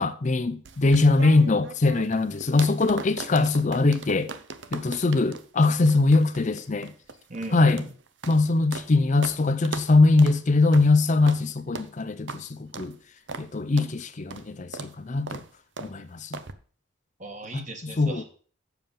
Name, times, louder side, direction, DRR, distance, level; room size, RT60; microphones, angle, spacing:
voice 1, 0.0-4.3 4.7-6.9 7.5-7.9 8.3-13.0 13.4-15.4 15.8-16.4 17.5-18.2, left 3 dB, 40° left, 0.5 m, -22 dB
sound 1, 0.6-8.9 9.2-9.4 9.6-9.9 10.2-10.4 10.7-10.9 11.3-11.4 11.7-11.9 12.3-12.4 12.7-12.9 13.3-13.5 13.8-13.9 14.3-14.5 14.7-14.9 15.3-15.5 15.8-15.9 16.3-16.5, right 4 dB, 65° right, 0.8 m, -38 dB
voice 2, 7.3-7.8 17.2-18.2, right 2 dB, 40° right, 1.9 m, -37 dB
7.5 x 7.1 x 5.4 m
head